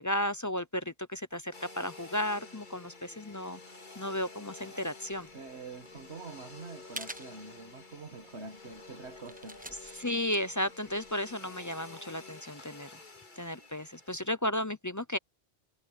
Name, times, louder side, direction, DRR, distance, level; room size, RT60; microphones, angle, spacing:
voice 1, 0.0-3.6 4.0-5.3 9.9-12.9 13.4-15.2, left 1 dB, 20° left, 0.6 m, -34 dB
Domestic sounds home sounds, 1.5-14.3, left 3 dB, 45° left, 2.5 m, -50 dB
voice 2, 4.6-4.9 5.3-9.6, right 4 dB, 80° right, 2.0 m, -46 dB
sound 1, 5.1-11.5, right 1 dB, 10° right, 1.0 m, -49 dB
omnidirectional pair, 1.1 m